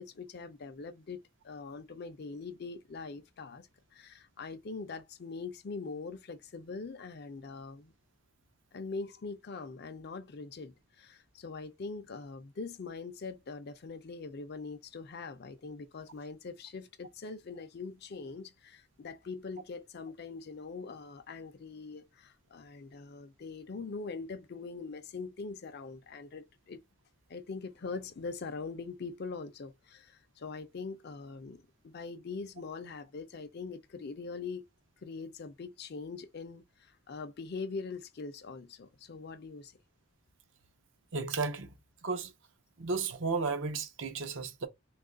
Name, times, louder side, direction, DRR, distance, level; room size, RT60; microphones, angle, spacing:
voice 1, 0.0-7.9 8.7-26.8 27.3-34.7 35.0-39.7, left 4 dB, 50° left, 0.5 m, -42 dB
voice 2, 41.1-41.7 42.0-42.3 42.8-44.7, right 4 dB, 65° right, 0.6 m, -33 dB
3.0 x 2.4 x 3.7 m
head